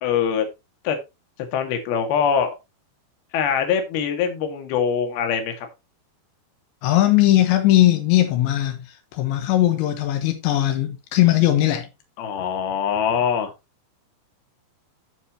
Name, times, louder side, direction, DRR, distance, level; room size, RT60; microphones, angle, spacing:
voice 1, 0.0-0.5 0.8-1.0 1.5-2.5 3.3-5.7 12.2-13.5, left 7 dB, 65° left, 3.6 m, -23 dB
voice 2, 6.8-8.8 9.1-11.9, left 14 dB, 85° left, 3.5 m, -19 dB
15.0 x 5.5 x 2.9 m
omnidirectional pair, 5.1 m